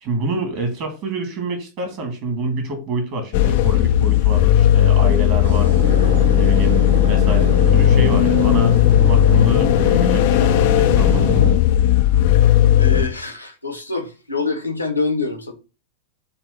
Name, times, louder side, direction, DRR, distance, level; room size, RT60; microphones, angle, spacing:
voice 1, 0.0-5.8 6.3-11.3, right 3 dB, 45° right, 2.1 m, -27 dB
sound 1, 3.3-13.1, left 12 dB, 50° left, 0.4 m, -15 dB
sound 2, 5.4-11.5, right 1 dB, 80° right, 2.6 m, -25 dB
voice 2, 12.8-15.5, left 3 dB, 90° left, 1.2 m, -25 dB
6.8 x 2.7 x 5.5 m
figure-of-eight pair, 90°, 0 cm